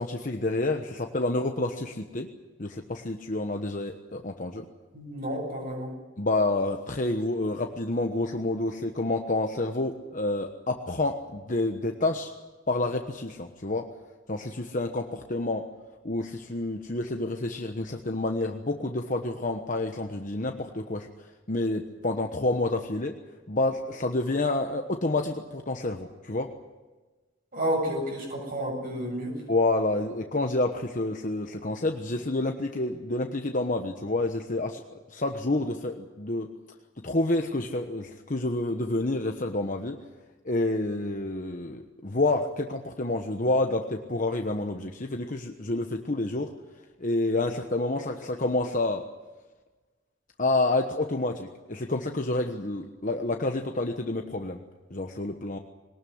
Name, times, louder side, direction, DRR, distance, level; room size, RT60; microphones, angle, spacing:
voice 1, 0.0-2.3 2.6-4.6 6.2-12.3 12.7-13.8 14.3-15.6 16.0-21.1 21.5-23.1 23.5-26.5 29.5-34.8 35.1-36.5 37.0-40.0 40.4-46.5 47.0-49.0 50.4-54.6 54.9-55.6, left 2 dB, 40° left, 4 dB, 1.2 m, -28 dB
voice 2, 4.9-5.9 27.5-29.3, equal, 45° right, 0 dB, 7.8 m, -30 dB
22.0 x 19.5 x 9.6 m, 1.3 s
head